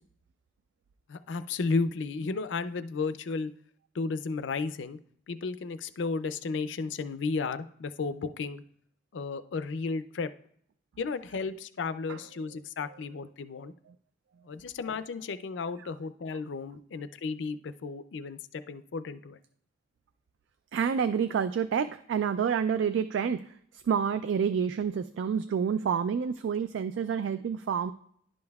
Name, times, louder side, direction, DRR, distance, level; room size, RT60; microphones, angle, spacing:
voice 1, 1.1-3.5 4.0-5.0 5.3-8.6 9.1-10.3 11.0-13.7 14.5-19.4, left 4 dB, 80° left, 12 dB, 0.4 m, -33 dB
voice 2, 20.7-23.4 23.9-27.9, right 7 dB, 85° right, 11 dB, 0.3 m, -28 dB
11.0 x 5.3 x 2.3 m, 0.65 s
head